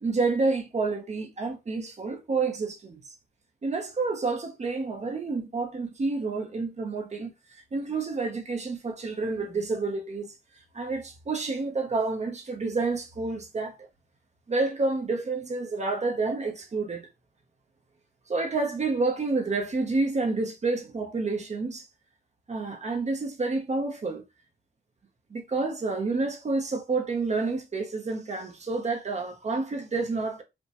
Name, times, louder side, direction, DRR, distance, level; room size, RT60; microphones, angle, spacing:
voice 1, 0.0-3.0 3.6-10.3 10.7-13.9 14.5-17.1 18.3-21.9 22.5-24.2 25.3-30.4, right 3 dB, 45° right, 0.7 m, -29 dB
5.1 x 2.2 x 2.9 m
wide cardioid pair, 140°, 16 cm